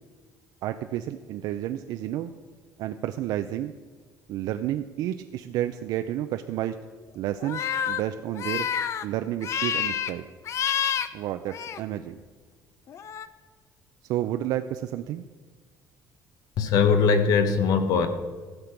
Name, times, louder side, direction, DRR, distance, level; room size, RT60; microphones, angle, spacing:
voice 1, 0.6-2.3 2.8-3.7 4.3-6.7 7.1-8.7 9.0-10.3 11.1-12.2 14.1-15.2, right 12 dB, 75° right, 8 dB, 0.5 m, -30 dB
sound 1, 7.4-8.0 8.4-9.1 9.4-10.1 10.5-11.1 11.5-11.8 12.9-13.3, left 8 dB, 45° left, 0.5 m, -28 dB
voice 2, 16.6-18.1, left 5 dB, 65° left, 9 dB, 1.1 m, -21 dB
15.0 x 6.8 x 5.9 m, 1.5 s
cardioid pair, 150°, 7 cm